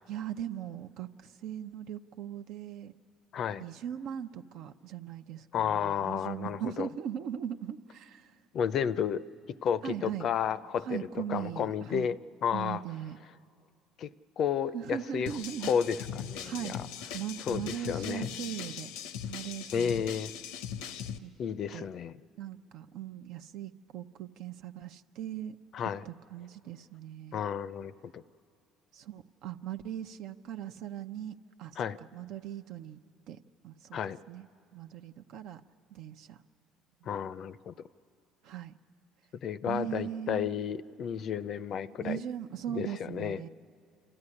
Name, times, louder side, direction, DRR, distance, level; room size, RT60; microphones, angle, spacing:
voice 1, 0.1-2.9 3.6-8.3 9.8-10.3 10.9-12.1 12.5-13.2 14.7-15.7 16.4-16.8 17.1-18.9 19.3-20.0 21.2-21.3 21.7-21.9 22.4-25.6 26.1-27.4 28.9-31.8 32.1-33.0 33.3-33.4 33.6-34.0 34.3-34.5 34.7-35.6 35.9-36.4 38.4-38.8 39.7-40.5 42.0-43.5, right 10 dB, 70° right, 8 dB, 0.6 m, -39 dB
voice 2, 3.3-3.6 5.5-6.9 8.5-9.2 9.6-12.8 14.0-15.3 15.6-16.9 17.4-18.3 19.7-20.3 20.8-20.9 21.4-22.2 25.7-26.1 27.3-28.2 31.8-32.0 33.9-34.2 37.0-37.7 39.4-42.2 42.7-43.5, left 8 dB, 55° left, 16 dB, 0.5 m, -32 dB
sound 1, 15.3-21.2, left 8 dB, 90° left, 0.7 m, -40 dB
27.0 x 14.5 x 9.8 m, 2.5 s
supercardioid pair, 95°, 0 cm